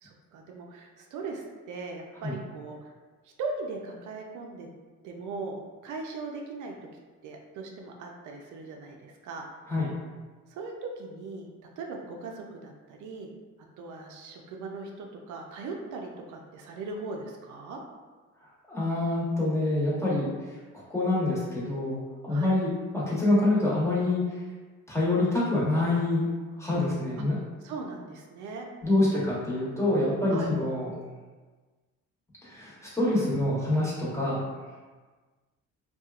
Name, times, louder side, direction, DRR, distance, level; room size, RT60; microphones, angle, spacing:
voice 1, 0.0-2.9 3.2-4.7 5.0-6.7 7.2-9.5 10.5-11.5 11.8-13.3 13.8-17.8 22.3-22.5 27.3-29.3 30.3-30.5, right 3 dB, 80° right, 1 dB, 0.5 m, -39 dB
voice 2, 18.7-20.3 20.9-24.2 24.9-26.3 26.6-27.4 28.8-30.9 32.4-34.4, left 2 dB, 10° left, -8 dB, 1.0 m, -26 dB
2.8 x 2.3 x 2.4 m, 1.4 s
cardioid pair, 90°, 30 cm